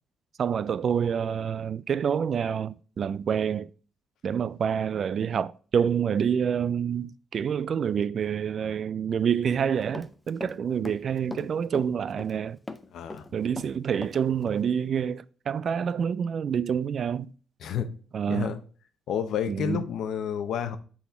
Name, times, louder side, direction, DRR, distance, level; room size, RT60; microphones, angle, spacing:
voice 1, 0.4-3.7 4.2-12.6 13.3-17.3 18.1-18.6 19.5-19.8, right 7 dB, 55° right, 0.3 m, -27 dB
Run, 9.5-10.6 10.8-12.4 12.7-14.2 14.5-14.6, left 2 dB, 10° left, 0.6 m, -40 dB
voice 2, 12.9-13.3 17.6-17.9 18.3-18.6 19.1-20.8, left 8 dB, 75° left, 0.7 m, -30 dB
5.9 x 4.1 x 4.3 m
cardioid pair, 90°, 0 cm